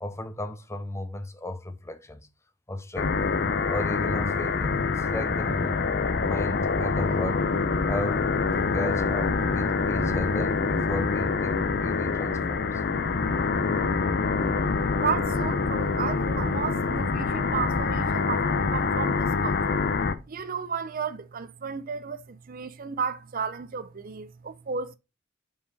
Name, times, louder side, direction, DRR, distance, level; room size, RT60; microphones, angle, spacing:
voice 1, 0.0-2.2 2.7-3.3 3.7-5.8 6.1-7.4 7.8-12.8, left 1 dB, 15° left, 0.6 m, -35 dB
sound 1, 3.0-20.1, left 4 dB, 50° left, 0.7 m, -26 dB
voice 2, 15.0-25.0, right 6 dB, 45° right, 0.5 m, -33 dB
5.6 x 4.8 x 4.7 m
head